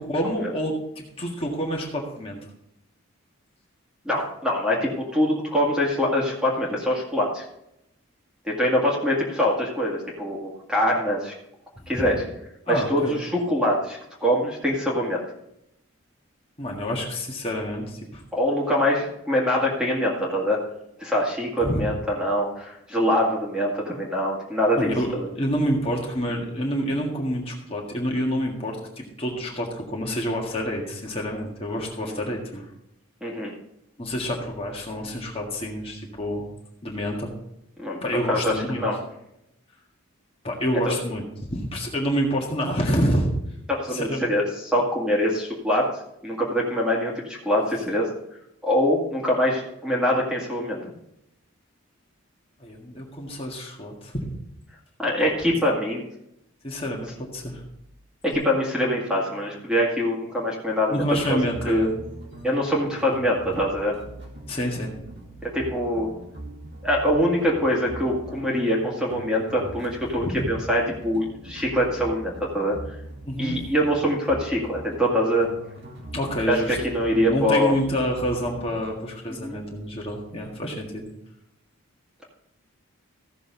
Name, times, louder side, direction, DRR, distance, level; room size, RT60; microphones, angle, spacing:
voice 1, 0.0-2.4 11.8-11.9 12.7-13.2 16.6-18.2 21.6-21.8 24.8-32.6 34.0-36.4 36.8-37.3 38.0-38.9 40.4-43.3 43.9-44.3 52.6-54.3 55.2-55.3 56.6-57.6 60.9-61.9 64.5-64.9 70.2-70.5 73.3-73.6 76.1-81.0, equal, 25° left, -1 dB, 1.8 m, -28 dB
voice 2, 4.1-7.4 8.4-11.3 11.9-12.2 12.7-15.2 18.3-20.6 21.0-25.3 32.1-32.2 33.2-33.5 37.8-38.0 38.3-39.0 40.8-40.9 43.7-45.9 46.2-48.1 48.6-50.8 55.0-56.0 58.2-61.4 61.6-61.9 62.4-64.0 65.4-66.1 66.8-72.8 73.4-75.5 76.5-77.7 79.3-79.6, equal, 5° right, -3 dB, 2.0 m, -24 dB
Bass guitar, 58.3-64.6, right 3 dB, 80° right, 2.2 m, -50 dB
sound 1, 61.0-78.8, right 1 dB, 50° right, 2.1 m, -41 dB
15.5 x 6.7 x 3.9 m, 0.82 s
head